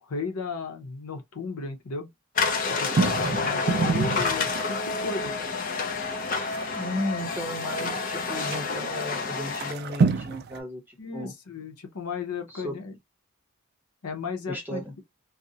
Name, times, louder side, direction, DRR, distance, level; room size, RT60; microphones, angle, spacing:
voice 1, 0.0-2.1 2.8-5.3 11.0-13.0 14.0-14.8, left 4 dB, 90° left, 0.7 m, -35 dB
sound 1, 2.4-9.7, left 4 dB, 35° left, 0.5 m, -29 dB
sound 2, 2.4-5.0 5.5-5.6 5.8-8.0 8.5-8.6 9.0-9.1 9.5-10.6, right 4 dB, 45° right, 0.3 m, -28 dB
voice 2, 6.7-11.3 12.5-12.8 14.5-14.9, left 1 dB, 10° right, 0.6 m, -35 dB
2.5 x 2.0 x 2.7 m
head